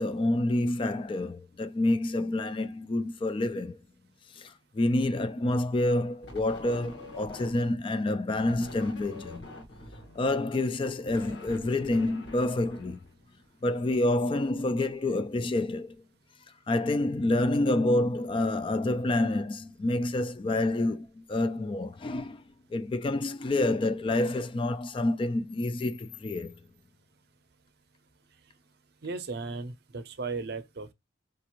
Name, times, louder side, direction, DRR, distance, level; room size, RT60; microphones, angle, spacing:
voice 1, 0.0-3.8 4.3-9.5 10.2-13.0 13.6-16.0 16.7-22.4 22.7-26.5, left 2 dB, 30° left, 0.3 m, -28 dB
sound 1, 6.2-7.9 8.4-13.6, left 1 dB, 70° left, 1.5 m, -45 dB
voice 2, 29.0-30.9, right 4 dB, 60° right, 0.6 m, -36 dB
5.1 x 2.5 x 2.9 m
head